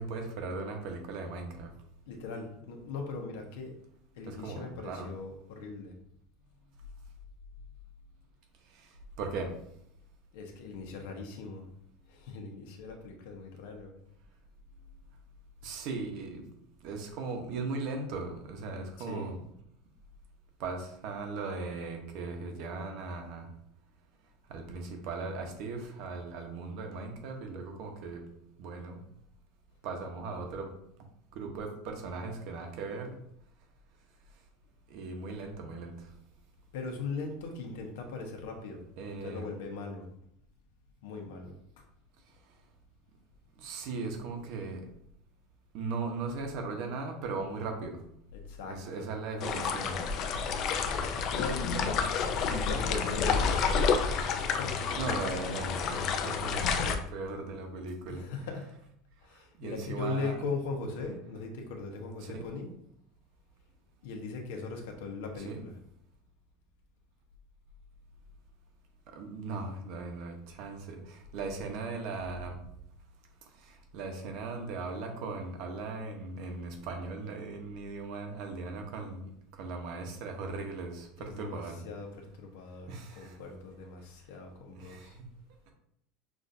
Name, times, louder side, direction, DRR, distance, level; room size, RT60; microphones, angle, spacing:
voice 1, 0.0-1.7 4.3-5.1 9.2-9.6 15.6-16.4 16.8-19.4 20.6-23.4 24.5-28.3 28.6-29.0 29.8-30.7 31.3-33.2 34.9-35.9 39.0-39.5 43.6-44.9 45.7-48.0 48.7-50.0 54.9-58.3 59.6-60.4 62.2-62.5 65.4-65.6 69.1-72.6 73.6-79.3 79.6-81.8 82.9-83.4 84.7-85.3, right 3 dB, 55° right, 3 dB, 0.9 m, -38 dB
voice 2, 2.1-3.8 4.1-5.9 10.3-11.7 12.1-13.9 19.0-19.3 36.7-40.1 41.0-41.8 48.3-49.1 51.3-52.1 52.4-53.9 54.3-54.8 57.8-58.7 59.2-62.7 64.0-65.7 81.2-85.2, left 4 dB, 80° left, 2 dB, 0.9 m, -39 dB
sound 1, 49.4-57.0, left 5 dB, 45° left, 0.4 m, -29 dB
6.0 x 2.5 x 2.6 m, 0.72 s
supercardioid pair, 150°, 0 cm